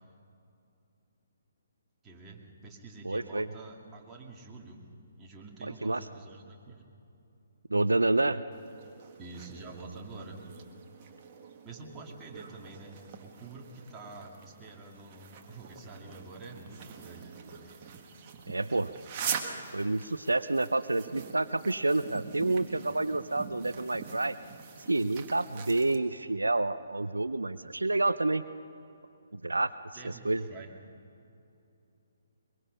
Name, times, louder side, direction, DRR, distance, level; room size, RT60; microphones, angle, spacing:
voice 1, 2.0-4.8 5.2-6.8 9.2-10.4 11.6-17.9 29.9-30.7, right 3 dB, 15° right, -2 dB, 2.5 m, -47 dB
voice 2, 3.0-3.5 5.6-6.0 7.7-8.4 18.5-18.9 19.7-24.4 24.9-28.4 29.3-29.7 30.0-30.4, right 2 dB, 80° right, 13 dB, 0.5 m, -28 dB
sound 1, 8.5-26.0, right 6 dB, 30° right, 1.7 m, -44 dB
22.5 x 22.5 x 5.6 m, 2.7 s
figure-of-eight pair, 135°, 0 cm